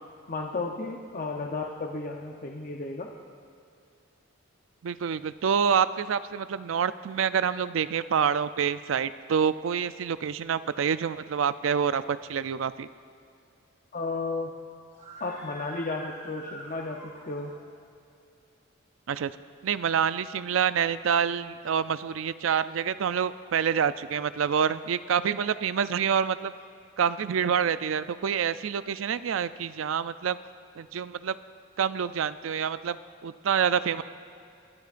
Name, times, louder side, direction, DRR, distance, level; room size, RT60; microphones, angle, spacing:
voice 1, 0.3-3.1 13.9-14.5 15.2-17.5, left 3 dB, 40° left, 1 dB, 0.8 m, -33 dB
voice 2, 4.8-12.9 19.1-19.3 19.6-26.5 27.0-30.4 30.8-31.4 31.8-34.0, right 7 dB, 75° right, 14 dB, 0.4 m, -27 dB
Screaming, 14.9-17.7, right 2 dB, 35° right, 3.2 m, -45 dB
23.5 x 12.0 x 2.5 m, 2.5 s
head